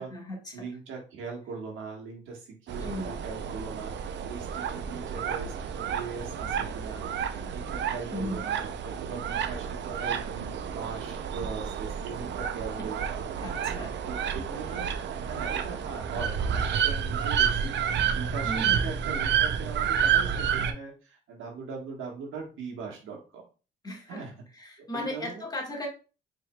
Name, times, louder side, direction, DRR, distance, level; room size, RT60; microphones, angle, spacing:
voice 1, 0.0-0.7 2.8-3.2 8.1-8.4 12.8-12.9 13.4-13.9 14.6-14.7 18.4-18.9 23.8-24.3 24.5-25.9, left 1 dB, 20° left, -1 dB, 1.5 m, -37 dB
voice 2, 0.5-14.9 15.2-18.5 18.8-23.4 24.1-24.4 24.9-25.4, right 5 dB, 85° right, 0 dB, 1.5 m, -40 dB
sound 1, 2.7-20.7, right 8 dB, 65° right, 0.5 m, -30 dB
4.4 x 3.3 x 2.2 m, 0.34 s
cardioid pair, 90°, 20 cm